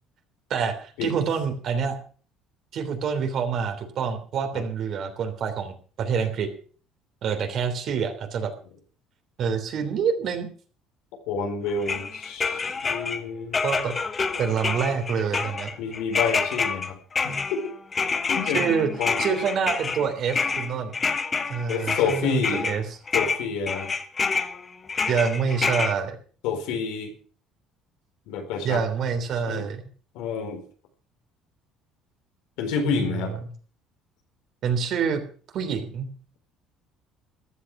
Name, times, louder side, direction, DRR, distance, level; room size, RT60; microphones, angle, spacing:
voice 1, 0.5-2.0 2.7-6.5 7.2-8.5 9.4-10.5 13.6-13.9 14.4-15.7 18.5-18.9 19.2-20.9 21.5-23.0 25.1-26.2 28.6-29.8 32.9-33.3 34.6-35.2 35.5-36.1, right 6 dB, 55° right, 6 dB, 3.2 m, -26 dB
voice 2, 11.3-13.6 15.8-17.0 17.2-17.7 18.3-18.7 19.0-19.2 21.7-22.7 23.1-23.9 26.4-27.1 28.3-28.8 29.5-29.6 30.1-30.6 32.6-33.3, left 5 dB, 85° left, 4 dB, 4.1 m, -28 dB
sound 1, 11.8-13.2 13.5-22.8 23.1-25.9, left 5 dB, 25° left, 1.2 m, -27 dB
14.5 x 10.5 x 6.0 m, 0.42 s
cardioid pair, 120°, 0 cm